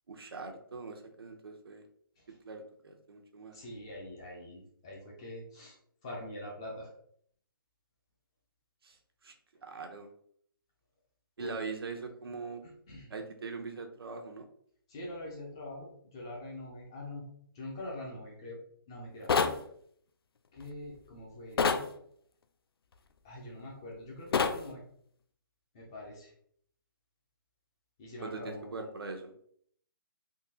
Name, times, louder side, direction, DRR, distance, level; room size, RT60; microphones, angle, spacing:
voice 1, 0.1-1.8 2.5-3.6 8.8-9.0 9.2-9.3 9.6-10.1 11.4-12.6 13.1-14.5 28.2-29.3, right 4 dB, 90° right, 5 dB, 0.7 m, -41 dB
voice 2, 3.5-5.8 6.0-6.9 11.4-11.6 11.9-12.1 12.9-13.1 14.9-17.2 17.5-18.6 18.9-19.3 20.5-21.8 23.2-24.8 25.7-26.3 28.0-28.9, left 1 dB, 10° left, -2 dB, 0.4 m, -44 dB
sound 1, 19.3-19.6 21.6-21.9 24.3-24.6, left 5 dB, 85° left, 0.4 m, -26 dB
3.7 x 2.7 x 2.7 m, 0.64 s
hypercardioid pair, 170°, 12 cm